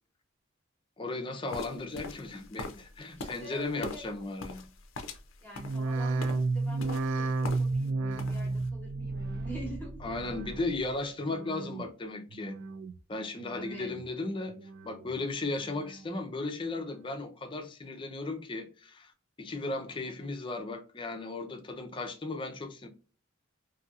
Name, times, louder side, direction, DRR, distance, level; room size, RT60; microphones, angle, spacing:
voice 1, 1.0-4.6 10.0-12.6 13.1-14.5 14.8-19.1 19.4-22.9, left 2 dB, 25° left, 0.5 m, -36 dB
sound 1, 1.5-7.9 8.1-8.7, left 2 dB, 80° left, 0.5 m, -43 dB
voice 2, 3.1-4.0 5.4-10.1 13.5-13.9 19.6-20.3, right 1 dB, 10° left, 0.9 m, -46 dB
sound 2, 5.6-10.9 11.2-11.8 12.3-13.0 13.4-14.1 14.5-15.2 15.6-16.2 16.7-16.8, right 3 dB, 65° right, 0.3 m, -33 dB
2.7 x 2.7 x 2.3 m
head